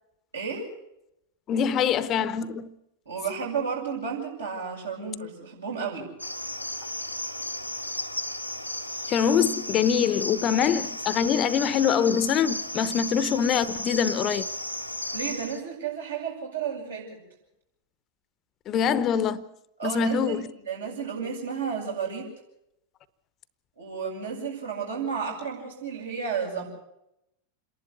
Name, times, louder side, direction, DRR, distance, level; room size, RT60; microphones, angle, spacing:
voice 1, 0.3-0.6 3.1-6.1 15.1-17.2 19.8-22.3 23.8-26.6, right 6 dB, 75° right, 7.7 m, -32 dB
voice 2, 1.5-2.7 9.1-14.5 18.7-19.4 19.8-20.5, left 8 dB, 30° left, 0.8 m, -24 dB
Cricket, 6.2-15.6, left 1 dB, 90° left, 1.1 m, -34 dB
28.0 x 11.5 x 8.3 m
figure-of-eight pair, 90°, 0 cm